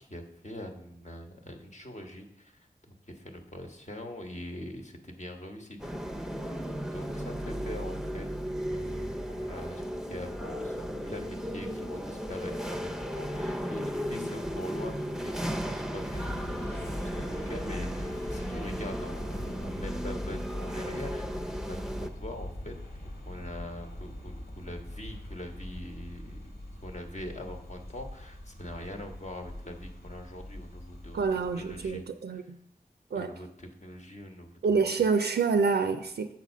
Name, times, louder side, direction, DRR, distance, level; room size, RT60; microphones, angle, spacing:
voice 1, 0.0-2.6 2.9-5.9 6.9-8.3 8.7-9.8 10.1-22.8 23.2-26.4 26.8-31.2 31.5-32.0 32.4-32.5 33.1-34.9, left 1 dB, 45° left, 3 dB, 1.1 m, -43 dB
sound 1, 5.8-22.1, equal, 5° right, 0.6 m, -35 dB
sound 2, 16.1-32.0, left 1 dB, 70° left, 1.7 m, -41 dB
voice 2, 31.1-32.6 33.1-33.3 34.6-36.3, right 5 dB, 85° right, 7 dB, 0.4 m, -27 dB
7.5 x 4.1 x 6.2 m, 0.77 s
wide cardioid pair, 50°, 17 cm